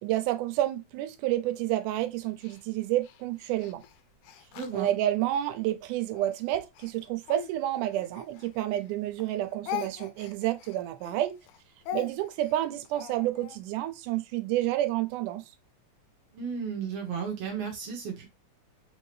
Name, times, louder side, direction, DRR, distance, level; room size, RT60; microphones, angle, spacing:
voice 1, 0.0-3.8 4.7-11.3 11.9-15.4, right 13 dB, 90° right, 2.1 m, -29 dB
Speech, 2.4-5.5 6.1-8.9 9.2-13.6, left 12 dB, 85° left, 2.1 m, -42 dB
voice 2, 4.5-4.9 16.3-18.3, right 6 dB, 65° right, 1.7 m, -34 dB
4.9 x 2.7 x 3.2 m
omnidirectional pair, 3.5 m